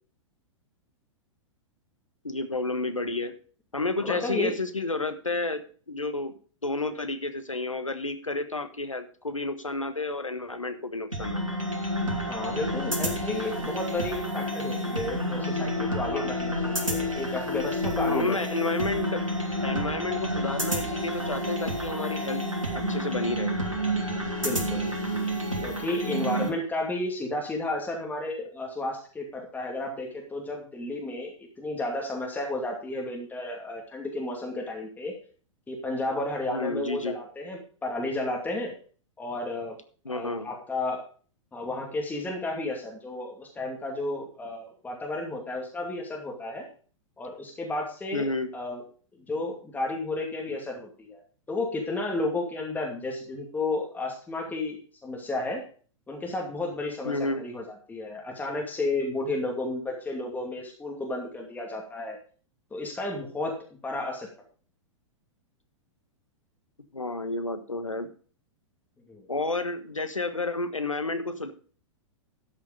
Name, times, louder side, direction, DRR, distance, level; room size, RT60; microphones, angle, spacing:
voice 1, 2.2-3.3 3.7-5.6 5.9-6.3 6.6-11.4 15.8-16.3 18.1-19.2 19.6-22.4 22.7-23.5 36.5-37.2 40.0-40.5 48.1-48.5 57.0-57.4 66.9-68.1 69.3-71.5, left 2 dB, 90° left, 9 dB, 1.3 m, -31 dB
voice 2, 4.0-4.6 12.3-18.4 24.4-24.9 25.6-35.1 35.7-38.7 39.2-39.8 40.1-41.0 41.5-46.7 47.2-48.8 49.3-51.2 51.5-55.6 56.1-62.2 62.7-64.3 69.1-69.3, left 2 dB, 10° left, 0 dB, 2.6 m, -32 dB
sound 1, 11.1-26.5, equal, 90° right, 3.3 m, -29 dB
12.5 x 6.7 x 5.1 m, 0.41 s
figure-of-eight pair, 105°, 16 cm